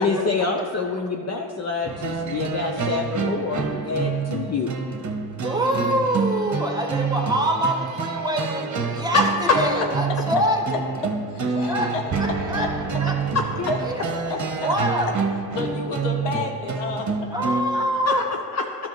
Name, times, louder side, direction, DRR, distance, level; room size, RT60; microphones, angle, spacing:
voice 1, 0.0-4.7 9.1-9.2 18.1-18.2, left 4 dB, 40° left, 2 dB, 0.7 m, -25 dB
sound 1, 1.8-17.6, right 5 dB, 40° right, 1.0 m, -27 dB
voice 2, 5.4-10.8 11.7-11.9 12.2-12.7 13.0-13.1 13.8-14.3 14.6-15.1 17.3-18.3, right 1 dB, 10° right, 1 dB, 1.3 m, -25 dB
voice 3, 11.3-12.7 13.6-14.9 15.5-18.2 18.5-18.6, left 3 dB, 80° left, 3 dB, 1.0 m, -31 dB
12.0 x 5.9 x 3.1 m, 2.1 s
supercardioid pair, 60°, 42 cm